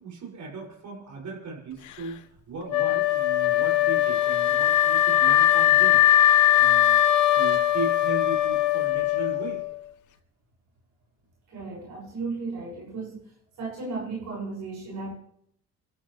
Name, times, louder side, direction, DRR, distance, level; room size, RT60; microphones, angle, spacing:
voice 1, 0.0-2.2 2.5-6.0 6.6-7.0 7.3-9.6, right 3 dB, 70° right, -1 dB, 6.4 m, -37 dB
Wind instrument woodwind instrument, 2.7-9.7, left 12 dB, 80° left, 1.0 m, -20 dB
voice 2, 11.5-13.3 13.6-15.1, right 3 dB, 90° right, -4 dB, 6.4 m, -35 dB
29.5 x 12.5 x 3.3 m, 0.72 s
cardioid pair, 90°, 30 cm